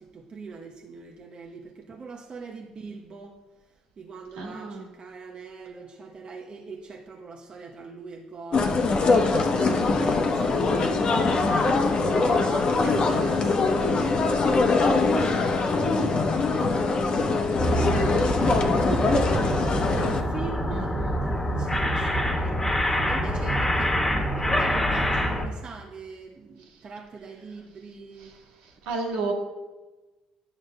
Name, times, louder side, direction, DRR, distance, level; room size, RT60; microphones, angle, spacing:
voice 1, 0.0-3.4 4.0-11.7 12.0-28.4, right 4 dB, 45° right, 0 dB, 0.8 m, -41 dB
voice 2, 4.4-4.9 20.7-21.2 26.6-26.7 28.2-29.3, right 3 dB, 75° right, -1 dB, 1.5 m, -33 dB
sound 1, 8.5-20.2, left 3 dB, 45° left, 0.9 m, -23 dB
sound 2, 17.6-25.5, equal, 20° left, 1.4 m, -25 dB
10.5 x 6.2 x 2.2 m, 1.1 s
hypercardioid pair, 55°, 2 cm